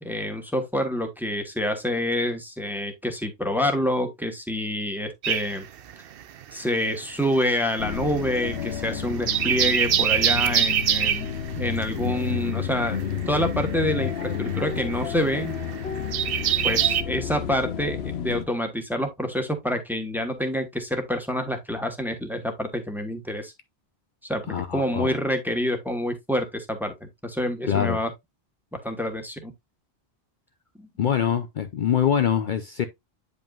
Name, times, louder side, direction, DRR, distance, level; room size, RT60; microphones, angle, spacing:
voice 1, 0.0-5.7 6.5-11.3 11.6-13.0 13.3-15.5 16.6-23.5 24.2-28.1 28.7-29.5 30.8-30.9, left 1 dB, ahead, 1.2 m, -27 dB
sound 1, 5.2-6.7 6.9-17.0, right 9 dB, 65° right, 0.8 m, -25 dB
sound 2, 7.8-18.4, left 8 dB, 75° left, 1.1 m, -31 dB
voice 2, 24.5-25.2 27.6-28.0 31.0-32.9, left 8 dB, 55° left, 0.7 m, -24 dB
9.0 x 5.3 x 2.4 m
omnidirectional pair, 1.1 m